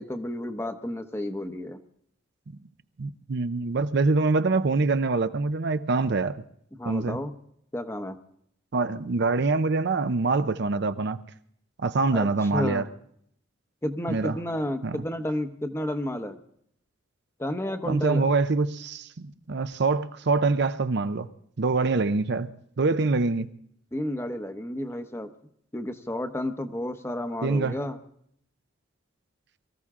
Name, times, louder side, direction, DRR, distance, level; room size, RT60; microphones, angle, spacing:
voice 1, 0.0-1.8 6.8-7.3 7.7-8.2 12.1-12.9 13.8-16.4 17.4-18.3 23.9-25.3 25.7-28.0, left 1 dB, 15° left, 0.9 m, -31 dB
voice 2, 3.0-6.4 6.8-7.2 8.7-11.2 11.8-12.8 14.1-14.4 14.8-15.0 17.9-21.3 21.6-22.5 22.8-23.5 27.4-27.8, right 3 dB, 55° right, 0.6 m, -25 dB
23.5 x 14.5 x 3.7 m
head